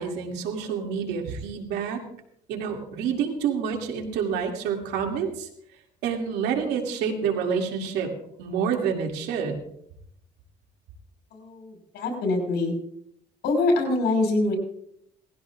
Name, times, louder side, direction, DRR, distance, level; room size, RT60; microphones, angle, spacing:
voice 1, 0.0-2.0 2.5-5.5 6.0-8.1 8.4-9.6, right 7 dB, 85° right, 2 dB, 2.6 m, -28 dB
voice 2, 11.3-12.7 13.4-14.6, left 2 dB, 75° left, 2 dB, 5.8 m, -24 dB
19.5 x 15.5 x 2.5 m, 0.71 s
cardioid pair, 110°, 17 cm